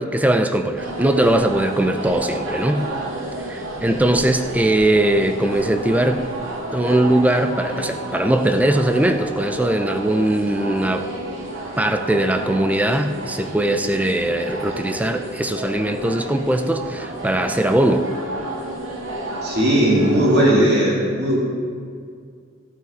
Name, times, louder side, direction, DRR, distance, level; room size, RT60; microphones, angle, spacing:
voice 1, 0.0-2.9 3.4-6.3 6.7-11.1 11.8-18.0, right 1 dB, 5° right, 7 dB, 0.5 m, -20 dB
sound 1, 0.8-20.5, right 1 dB, 75° right, 1.8 m, -31 dB
voice 2, 19.4-21.4, right 1 dB, 55° right, -4 dB, 2.8 m, -17 dB
16.0 x 9.0 x 3.8 m, 2.2 s
head